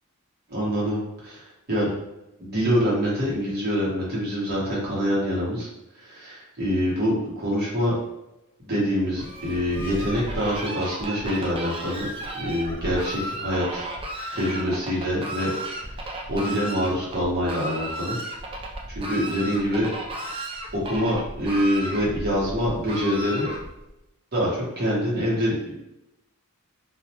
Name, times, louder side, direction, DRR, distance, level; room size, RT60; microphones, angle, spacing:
voice 1, 0.5-1.9 2.4-5.7 5.9-7.9 8.6-12.1 12.3-13.9 14.3-15.5 15.8-18.2 18.9-19.9 20.3-20.4 20.7-23.5 24.3-25.8, equal, 45° right, -6 dB, 1.0 m, -25 dB
Fowl, 9.1-23.9, right 1 dB, 25° right, 0.3 m, -34 dB
2.4 x 2.0 x 2.8 m, 0.90 s
head